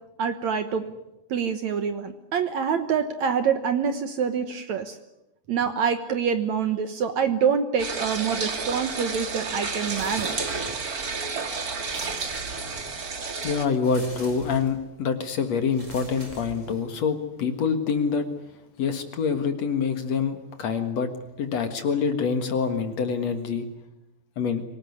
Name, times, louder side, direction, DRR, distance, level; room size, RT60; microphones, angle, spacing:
voice 1, 0.2-0.8 1.3-5.0 5.5-10.5, right 7 dB, 75° right, 9 dB, 1.6 m, -26 dB
sound 1, 7.8-13.6, right 4 dB, 45° right, 1.1 m, -31 dB
sound 2, 9.8-10.9 11.8-13.0 13.8-14.9 15.7-17.0, right 1 dB, 15° right, 4.9 m, -43 dB
voice 2, 13.4-18.3 18.8-21.1 21.4-23.7 24.4-24.6, left 6 dB, 55° left, 7 dB, 2.1 m, -26 dB
25.5 x 18.5 x 9.7 m, 0.93 s
omnidirectional pair, 5.0 m